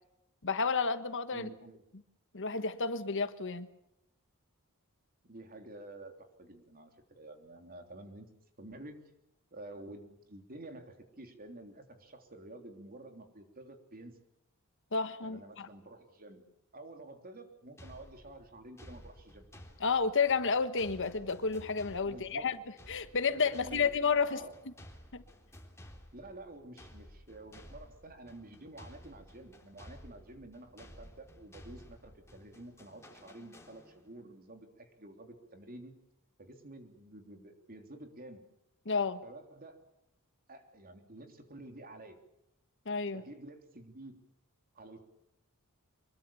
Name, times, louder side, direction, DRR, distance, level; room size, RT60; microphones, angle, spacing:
voice 1, 0.4-1.5 2.3-3.7 14.9-15.7 19.8-22.6 22.9-24.4 25.1-25.2 38.9-39.2 42.8-43.2, left 5 dB, 60° left, 1.4 m, -31 dB
voice 2, 1.3-1.8 5.2-8.3 8.6-9.1 9.5-14.2 15.2-16.4 16.7-19.4 22.0-22.6 23.3-23.9 24.2-24.5 26.1-36.0 36.4-38.4 39.2-39.8 40.5-42.2 43.1-44.1 44.7-45.0, right 2 dB, 40° right, 3.4 m, -50 dB
sound 1, 17.8-34.2, equal, 10° left, 3.6 m, -54 dB
25.0 x 22.5 x 7.1 m
head